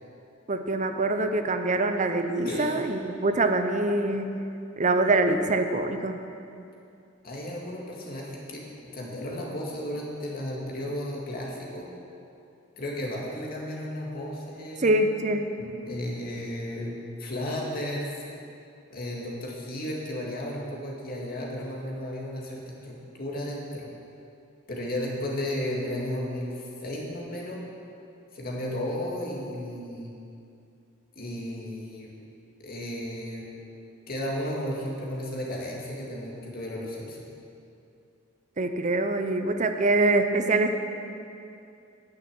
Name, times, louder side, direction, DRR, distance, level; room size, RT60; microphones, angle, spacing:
voice 1, 0.5-4.5 4.8-6.2 14.8-15.5 38.6-40.8, right 2 dB, 40° right, 7 dB, 0.7 m, -24 dB
voice 2, 7.2-11.9 12.8-14.9 15.6-16.9 17.2-18.2 18.9-23.9 24.7-27.6 28.3-30.1 31.2-32.1 32.6-33.5 34.1-37.3, left 1 dB, 50° left, -3 dB, 2.1 m, -34 dB
10.5 x 6.6 x 8.8 m, 2.6 s
head